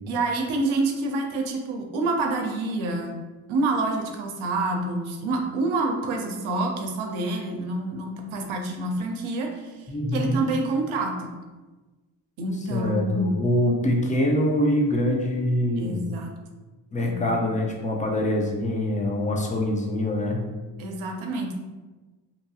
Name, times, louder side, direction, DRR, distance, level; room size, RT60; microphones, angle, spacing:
voice 1, 0.1-3.2 3.5-11.3 12.4-13.4 15.8-16.3 17.0-17.4 20.8-21.5, right 2 dB, 80° right, 3 dB, 0.6 m, -27 dB
voice 2, 9.9-10.4 12.7-16.0 16.9-20.4, left 1 dB, 15° left, 0 dB, 0.6 m, -24 dB
2.8 x 2.6 x 2.3 m, 1.2 s
supercardioid pair, 45°, 48 cm